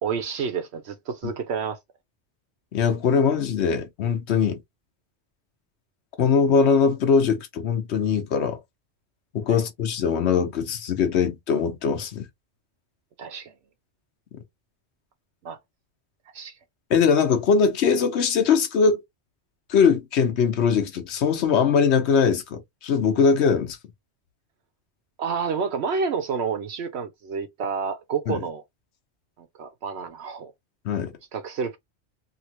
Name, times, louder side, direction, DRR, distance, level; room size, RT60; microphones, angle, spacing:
voice 1, 0.0-1.8 9.5-9.6 13.2-13.5 15.4-15.6 16.3-16.5 25.2-28.6 29.4-30.5 31.3-31.8, right 6 dB, 70° right, 0.9 m, -29 dB
voice 2, 2.7-4.6 6.2-8.6 9.3-12.2 16.9-19.0 19.7-23.8 28.3-28.4 30.8-31.1, left 6 dB, 75° left, 1.1 m, -21 dB
3.0 x 2.8 x 2.8 m
omnidirectional pair, 1.1 m